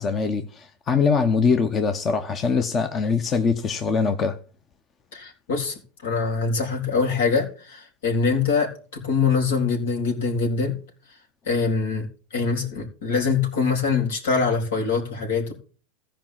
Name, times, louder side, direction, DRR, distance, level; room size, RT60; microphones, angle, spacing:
voice 1, 0.0-4.4, left 5 dB, 30° left, 1.0 m, -22 dB
voice 2, 5.1-10.8 11.5-15.5, left 5 dB, 80° left, 3.9 m, -24 dB
14.5 x 5.1 x 7.5 m
hypercardioid pair, 110°, 0 cm